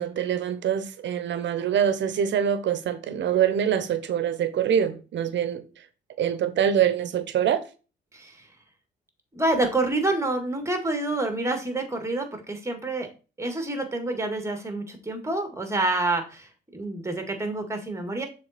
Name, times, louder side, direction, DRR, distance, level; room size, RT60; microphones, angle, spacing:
voice 1, 0.0-5.7 6.2-7.6, right 9 dB, 65° right, 12 dB, 0.9 m, -24 dB
voice 2, 8.1-8.5 9.3-13.1 13.4-18.2, right 2 dB, 15° right, 5 dB, 1.8 m, -28 dB
6.8 x 4.0 x 4.2 m, 0.34 s
cardioid pair, 90°, 20 cm